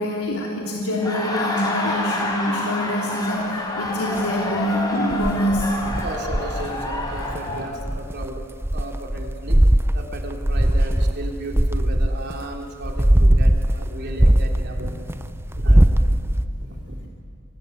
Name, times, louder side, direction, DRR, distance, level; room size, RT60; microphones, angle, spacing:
voice 1, 0.0-5.7, equal, 85° left, -2 dB, 3.5 m, -25 dB
Laughter, 0.9-7.7, left 2 dB, 15° left, 5.0 m, -28 dB
sound 1, 5.1-7.4 7.8-12.4 12.8-15.1 15.5-16.4, right 1 dB, 10° right, 0.6 m, -19 dB
voice 2, 5.8-8.5 8.7-9.6 9.9-15.3 15.5-16.2 16.6-17.0, right 1 dB, 50° right, 1 dB, 3.8 m, -34 dB
28.5 x 24.5 x 8.2 m, 2.3 s
head